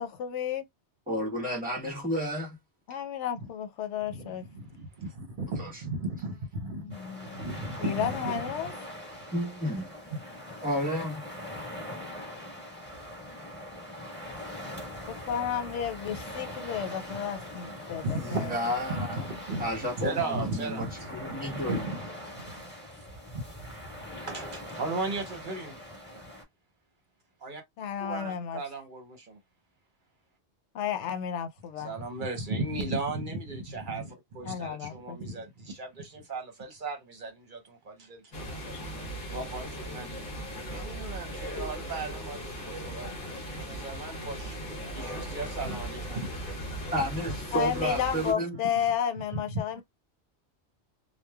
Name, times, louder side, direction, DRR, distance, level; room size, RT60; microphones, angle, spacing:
voice 1, 0.0-0.6 2.9-4.4 6.8-7.2 7.8-8.7 15.1-18.5 27.8-28.6 30.7-31.9 34.4-35.2 47.5-49.8, left 8 dB, 80° left, 0.9 m, -32 dB
voice 2, 1.1-2.6 5.6-5.8 9.3-9.9 10.6-11.3 18.2-19.2 19.6-21.9 46.9-48.6, equal, 10° right, 1.1 m, -32 dB
voice 3, 4.1-6.8 7.4-8.4 8.9-9.3 10.1-10.2 13.9-14.5 18.0-18.5 18.9-19.7 20.0-25.7 26.1-26.2 27.4-27.6 28.0-29.4 31.8-38.8 39.3-40.2 40.7-46.5 48.7-48.8 49.3-49.8, right 2 dB, 50° right, 0.8 m, -36 dB
sound 1, 6.9-26.4, left 1 dB, 10° left, 1.3 m, -42 dB
sound 2, 38.3-48.3, equal, 45° left, 1.0 m, -38 dB
3.0 x 2.2 x 2.2 m
omnidirectional pair, 1.2 m